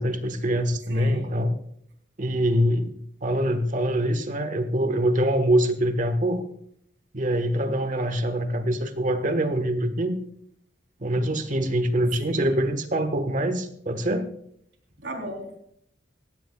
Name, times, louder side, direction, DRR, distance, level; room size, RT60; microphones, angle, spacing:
voice 1, 0.0-1.5 2.2-2.9 3.2-6.4 7.1-10.2 11.0-14.3, right 1 dB, 45° right, 9 dB, 1.4 m, -24 dB
voice 2, 0.9-1.2 12.2-12.5 15.0-15.6, right 1 dB, 70° right, 3 dB, 3.7 m, -36 dB
17.5 x 15.0 x 2.3 m, 0.69 s
head